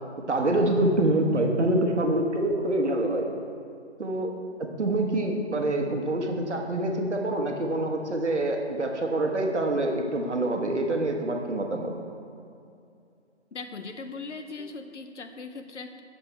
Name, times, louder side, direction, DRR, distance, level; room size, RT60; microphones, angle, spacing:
voice 1, 0.3-3.3 4.0-4.3 4.8-11.9, right 1 dB, 75° right, 2 dB, 1.3 m, -26 dB
voice 2, 13.5-16.0, left 4 dB, 80° left, 7 dB, 0.9 m, -39 dB
7.9 x 6.8 x 4.4 m, 2.5 s
figure-of-eight pair, 170°, 35 cm